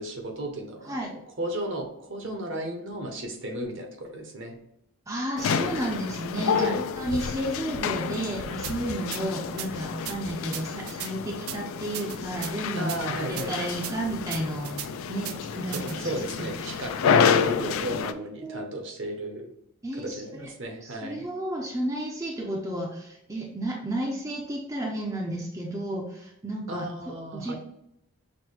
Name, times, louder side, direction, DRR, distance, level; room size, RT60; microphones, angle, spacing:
voice 1, 0.0-4.6 6.5-6.9 12.8-13.6 15.7-19.5 19.9-21.3 26.7-27.5, right 1 dB, 60° right, 3 dB, 0.8 m, -34 dB
voice 2, 5.1-14.8 15.1-16.9 18.1-18.7 19.8-20.5 20.8-27.5, right 1 dB, 15° right, -1 dB, 0.4 m, -32 dB
sound 1, 5.4-18.1, left 7 dB, 70° left, 0.3 m, -29 dB
sound 2, 8.6-8.7 9.1-9.2 9.6-9.7 10.0-10.2 10.5-11.1 11.5-11.6 11.9-12.5 12.9-13.0 13.4-13.5 13.8-13.9 14.3-14.9 15.2-15.4 15.7-15.9, right 11 dB, 75° right, 0.4 m, -36 dB
6.0 x 2.1 x 3.2 m, 0.80 s
head